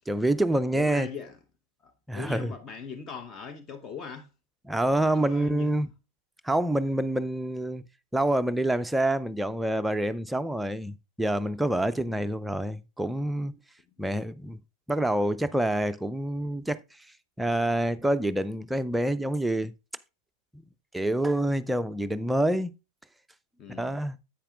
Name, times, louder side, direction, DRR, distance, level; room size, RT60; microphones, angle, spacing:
voice 1, 0.1-1.1 2.1-2.5 4.7-5.9 6.4-7.8 8.1-13.6 14.0-14.6 14.9-16.8 17.4-19.7 20.9-22.7 23.8-24.2, right 1 dB, 5° right, 0.5 m, -27 dB
voice 2, 0.7-1.4 1.8-4.3 4.8-5.9 23.6-24.0, left 6 dB, 25° left, 0.9 m, -40 dB
10.0 x 8.4 x 2.4 m
figure-of-eight pair, 90°, 0 cm